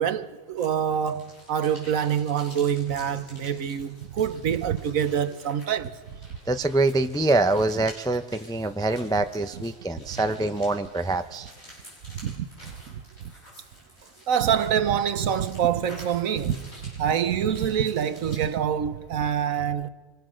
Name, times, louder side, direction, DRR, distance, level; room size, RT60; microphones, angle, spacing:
voice 1, 0.0-5.9 10.1-10.2 12.2-12.5 14.3-19.9, right 8 dB, 85° right, 1.4 m, -26 dB
sound 1, 0.6-18.6, equal, 50° left, 8.5 m, -50 dB
voice 2, 6.5-11.5, right 2 dB, 5° left, 0.3 m, -25 dB
25.5 x 21.0 x 6.4 m
omnidirectional pair, 1.4 m